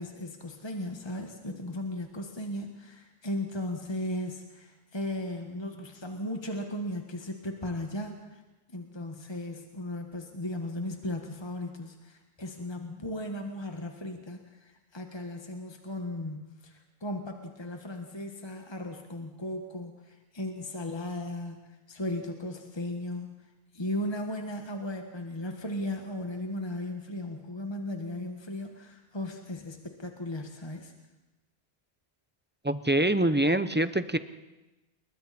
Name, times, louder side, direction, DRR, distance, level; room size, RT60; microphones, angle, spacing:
voice 1, 0.0-8.4 8.7-23.3 23.7-30.9, left 1 dB, 25° left, 3 dB, 1.7 m, -36 dB
voice 2, 32.6-34.2, right 1 dB, 15° right, 12 dB, 0.5 m, -25 dB
28.5 x 22.5 x 4.3 m, 1.1 s
omnidirectional pair, 1.0 m